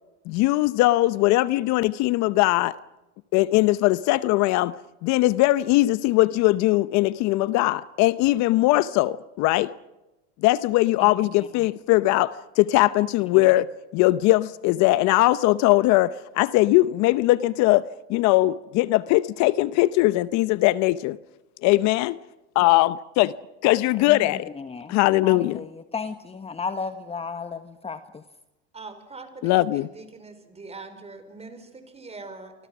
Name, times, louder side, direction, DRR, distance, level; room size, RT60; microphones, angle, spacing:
voice 1, 0.3-2.8 3.3-4.7 5.0-9.7 10.4-13.7 13.9-17.8 18.1-21.2 21.6-22.2 22.5-23.3 23.6-24.5 24.9-25.6 29.4-29.9, left 18 dB, 60° left, 0.8 m, -20 dB
voice 2, 24.6-24.9 25.2-28.2, left 5 dB, 20° left, 1.3 m, -34 dB
voice 3, 28.7-32.5, right 3 dB, 20° right, 5.0 m, -42 dB
28.5 x 25.0 x 6.1 m
supercardioid pair, 100°, 32 cm